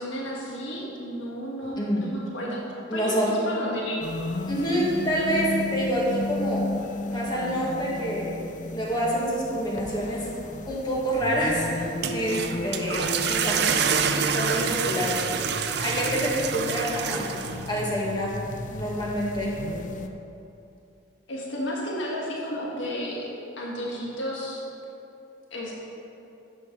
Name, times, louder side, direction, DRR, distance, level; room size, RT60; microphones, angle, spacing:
voice 1, 0.0-2.6 2.9-4.1 21.3-23.3 23.6-24.6 25.5-25.7, equal, 75° left, -3 dB, 1.6 m, -32 dB
voice 2, 2.9-3.4 4.5-6.7 7.1-8.3 8.7-10.3 10.7-13.7 14.3-15.2 15.8-18.4 18.7-19.6, equal, 20° left, -4 dB, 1.9 m, -27 dB
sound 1, 4.0-20.1, left 2 dB, 40° left, 0.5 m, -34 dB
sound 2, 11.8-17.9, right 7 dB, 55° right, 0.5 m, -27 dB
9.9 x 7.9 x 5.3 m, 2.8 s
head